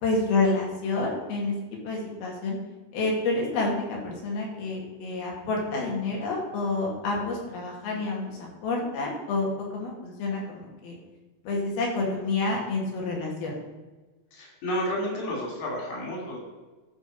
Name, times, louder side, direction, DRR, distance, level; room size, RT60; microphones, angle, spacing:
voice 1, 0.0-1.5 1.8-2.6 2.9-11.0 11.4-13.5, left 3 dB, 70° left, -1 dB, 3.9 m, -28 dB
voice 2, 14.3-16.4, equal, 90° left, -1 dB, 5.1 m, -31 dB
13.0 x 5.2 x 5.4 m, 1.2 s
omnidirectional pair, 4.6 m